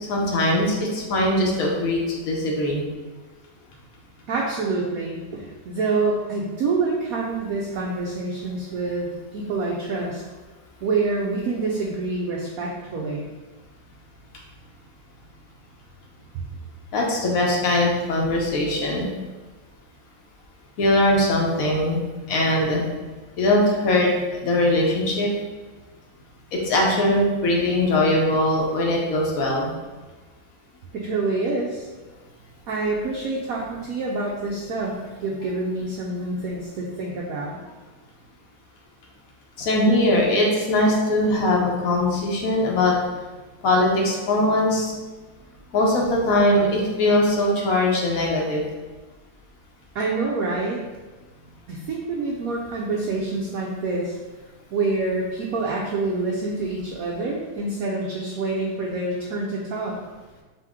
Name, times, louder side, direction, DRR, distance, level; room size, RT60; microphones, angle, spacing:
voice 1, 0.1-2.8 16.9-19.1 20.8-22.0 22.3-22.9 23.4-25.3 26.5-29.7 39.6-43.0 43.6-44.9 45.7-48.6, left 1 dB, 60° left, -1 dB, 1.0 m, -21 dB
voice 2, 4.3-10.2 10.8-13.3 30.9-31.9 32.7-34.9 35.2-37.6 49.9-50.8 51.7-54.2 54.7-60.0, right 3 dB, 80° right, -2 dB, 0.8 m, -27 dB
4.0 x 2.9 x 3.5 m, 1.3 s
omnidirectional pair, 2.1 m